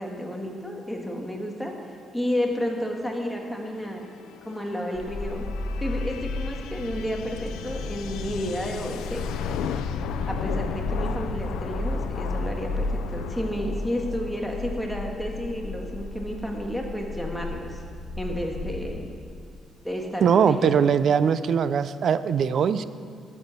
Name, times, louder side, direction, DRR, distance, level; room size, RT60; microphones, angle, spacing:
voice 1, 0.0-1.7 2.1-4.0 4.4-5.4 5.8-9.2 10.3-17.8 18.2-19.0 19.8-20.7, equal, 5° left, 1 dB, 1.7 m, -31 dB
sound 1, 3.0-16.5, left 7 dB, 90° left, 0.5 m, -36 dB
sound 2, 4.9-18.9, left 2 dB, 55° left, 2.2 m, -33 dB
voice 2, 20.2-22.8, right 7 dB, 60° right, 14 dB, 0.5 m, -21 dB
12.5 x 7.2 x 6.6 m, 2.2 s
cardioid pair, 90°, 0 cm